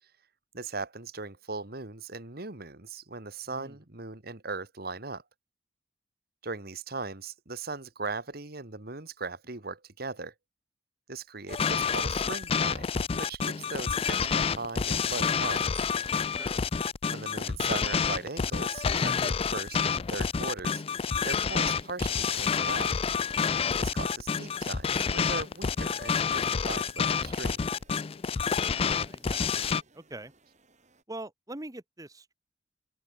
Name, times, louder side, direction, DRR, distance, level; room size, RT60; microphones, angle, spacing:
voice 1, 0.5-5.2 6.4-10.3 11.1-15.9 17.1-20.8 21.2-22.9 23.8-27.6, right 3 dB, 55° right, 2.0 m, -38 dB
sound 1, 11.5-29.8, left 6 dB, 30° left, 0.4 m, -28 dB
sound 2, 24.7-31.0, right 2 dB, 40° right, 5.9 m, -63 dB
voice 2, 29.0-30.3 31.1-32.3, right 2 dB, 20° right, 1.3 m, -43 dB
open air
head